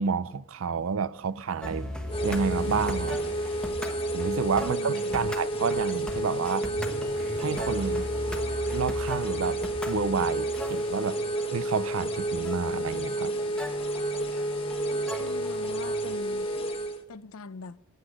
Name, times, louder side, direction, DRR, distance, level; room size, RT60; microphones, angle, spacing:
voice 1, 0.0-1.9 2.2-3.2 4.1-6.7 7.4-8.1 8.7-9.6 9.9-11.2 11.5-13.5, right 5 dB, 75° right, 0.5 m, -30 dB
sound 1, 0.9-11.6, right 1 dB, 55° right, 2.7 m, -44 dB
sound 2, 1.6-16.2, left 1 dB, 5° left, 1.1 m, -39 dB
sound 3, 2.1-17.0, right 1 dB, 25° left, 1.2 m, -30 dB
voice 2, 4.6-5.3 15.2-16.5 17.1-17.8, left 3 dB, 90° left, 0.6 m, -42 dB
14.5 x 9.8 x 5.1 m
head